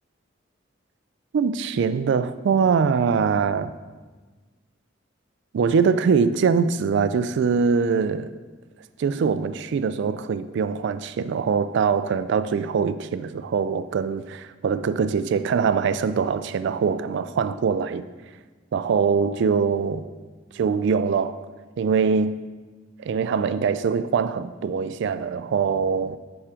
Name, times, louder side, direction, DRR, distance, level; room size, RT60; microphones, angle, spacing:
voice 1, 1.3-3.7 5.5-8.3 9.0-18.0 18.7-20.1 20.5-21.4 21.8-22.4 23.0-26.2, right 5 dB, 65° right, 0.3 m, -23 dB
7.2 x 3.6 x 4.9 m
head